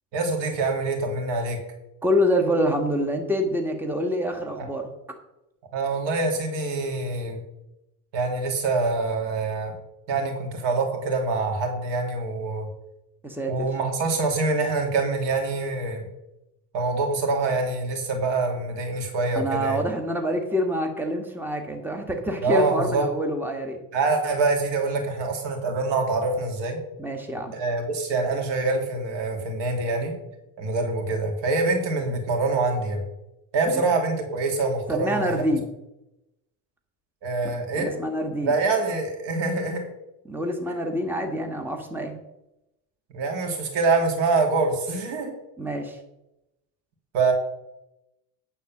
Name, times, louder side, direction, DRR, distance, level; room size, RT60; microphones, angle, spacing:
voice 1, 0.1-1.6 5.7-7.4 8.1-9.7 10.1-12.7 13.5-16.1 16.7-19.8 22.4-23.1 23.9-26.8 27.5-30.2 30.6-33.0 33.5-35.4 37.2-37.9 38.4-39.8 43.1-45.3 47.1-47.3, right 3 dB, 65° right, 2 dB, 2.6 m, -25 dB
voice 2, 2.0-4.9 13.2-13.7 19.3-23.8 27.0-27.5 33.7-33.8 34.9-35.6 37.4-38.5 40.2-42.2 45.6-46.0, equal, 5° right, 3 dB, 1.5 m, -26 dB
9.2 x 4.2 x 7.1 m, 0.91 s
supercardioid pair, 95°, 46 cm